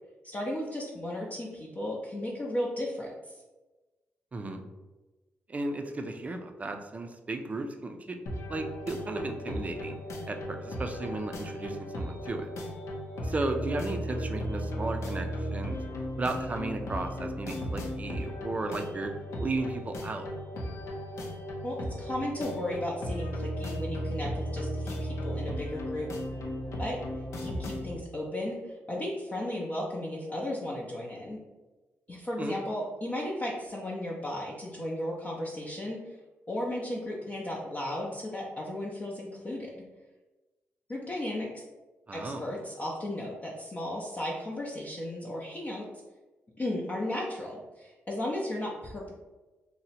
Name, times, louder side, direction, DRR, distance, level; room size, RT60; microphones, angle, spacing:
voice 1, 0.2-3.4 21.6-26.1 26.8-27.0 27.3-31.4 32.1-36.2 36.5-39.8 40.9-41.6 42.1-45.8 46.6-49.1, left 1 dB, 30° left, -4 dB, 0.5 m, -35 dB
voice 2, 4.3-4.6 5.5-8.2 8.5-10.0 10.3-12.5 13.2-15.8 16.2-19.1 19.4-20.3 32.4-32.6 42.1-42.4, right 2 dB, 30° right, 5 dB, 0.4 m, -35 dB
sound 1, 8.3-28.0, equal, 90° left, 0.6 m, -36 dB
2.7 x 2.1 x 4.0 m, 1.2 s
cardioid pair, 100°, 5 cm